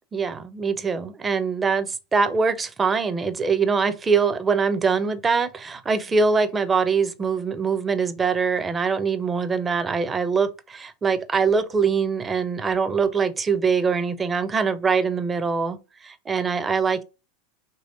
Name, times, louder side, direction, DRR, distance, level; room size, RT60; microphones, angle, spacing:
voice 1, 0.1-17.0, right 5 dB, 20° right, 0.4 m, -23 dB
3.0 x 2.7 x 2.5 m
figure-of-eight pair, 85°, 0 cm